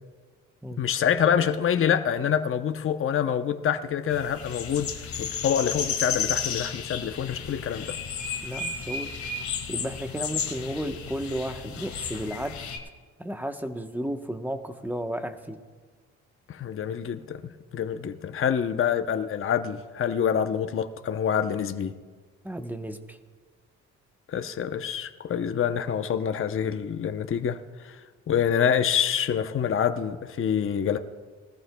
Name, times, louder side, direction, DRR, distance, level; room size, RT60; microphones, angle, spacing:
voice 1, 0.8-4.9 5.2-7.9 16.5-17.4 17.7-21.9 24.3-28.0 28.3-31.0, left 8 dB, 45° left, 8 dB, 0.8 m, -26 dB
sound 1, 4.1-12.8, left 6 dB, 70° left, 1.9 m, -33 dB
voice 2, 8.4-9.1 9.7-12.5 13.2-15.6 22.4-23.2, right 1 dB, 5° right, 6 dB, 1.0 m, -33 dB
20.0 x 14.0 x 2.3 m, 1.4 s
cardioid pair, 90°, 30 cm